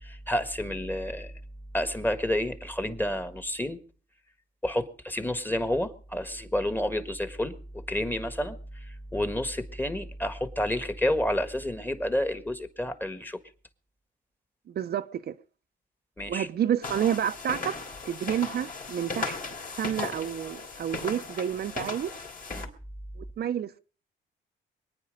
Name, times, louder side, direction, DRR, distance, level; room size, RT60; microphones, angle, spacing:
voice 1, 0.0-1.3 1.7-3.8 4.6-13.4 16.2-16.5 22.5-22.7, left 1 dB, 10° left, 1.5 m, -30 dB
voice 2, 14.7-15.3 16.3-17.8 18.1-19.4 19.7-22.1 23.2-23.8, right 9 dB, 55° right, 0.7 m, -29 dB
sound 1, 16.8-22.6, left 4 dB, 45° left, 3.2 m, -37 dB
22.5 x 9.7 x 5.2 m
cardioid pair, 90°, 20 cm